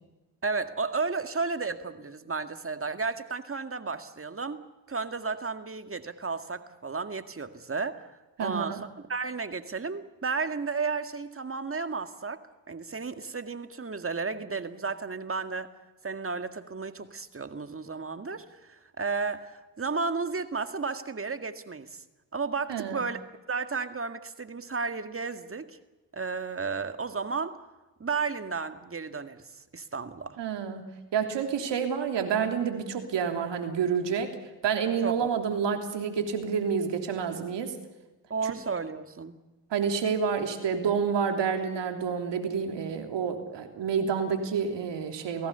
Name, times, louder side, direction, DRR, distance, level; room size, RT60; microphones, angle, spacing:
voice 1, 0.4-4.6 4.9-8.8 9.1-15.7 16.0-22.0 22.3-23.2 23.5-25.8 26.1-27.6 28.0-29.4 29.7-30.4 35.0-35.3 38.3-39.4, right 4 dB, 30° right, 9 dB, 1.9 m, -33 dB
voice 2, 8.4-8.8 22.7-23.0 30.4-34.3 34.6-37.7 39.7-45.5, right 6 dB, 65° right, 5 dB, 3.3 m, -29 dB
28.5 x 17.0 x 6.9 m, 1.1 s
hypercardioid pair, 50°, 45 cm